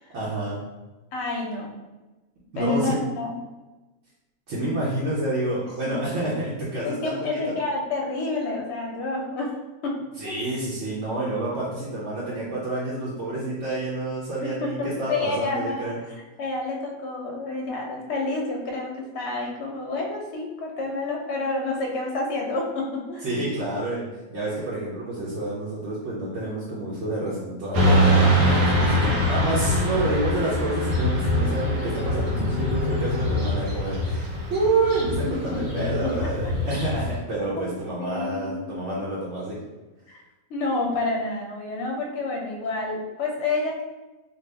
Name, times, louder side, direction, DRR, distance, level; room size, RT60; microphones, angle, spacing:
voice 1, 0.1-0.6 2.5-3.0 4.5-7.2 10.2-16.0 23.2-24.0 24.3-39.6, right 2 dB, 60° right, -7 dB, 1.0 m, -28 dB
voice 2, 1.1-1.7 2.6-3.3 5.7-5.8 6.8-9.6 9.8-10.3 14.4-15.9 16.4-23.3 28.5-29.2 35.3-36.3 37.6-37.7 38.0-38.9 40.1-40.2 40.5-43.8, left 3 dB, 60° left, 0 dB, 0.8 m, -29 dB
Motorcycle / Traffic noise roadway noise, 27.7-37.1, equal, 85° right, 1.2 m, -23 dB
2.7 x 2.4 x 3.3 m, 1.1 s
omnidirectional pair, 1.5 m